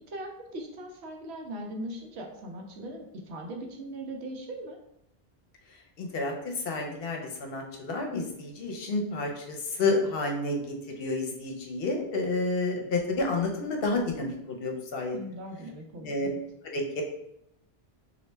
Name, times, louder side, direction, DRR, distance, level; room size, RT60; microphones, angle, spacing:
voice 1, 0.1-4.8 15.1-16.4, right 1 dB, 80° right, 2 dB, 0.9 m, -39 dB
voice 2, 6.0-15.2 16.0-16.3 16.6-17.0, left 3 dB, 65° left, 2 dB, 0.8 m, -30 dB
3.1 x 2.5 x 3.2 m, 0.78 s
omnidirectional pair, 1.1 m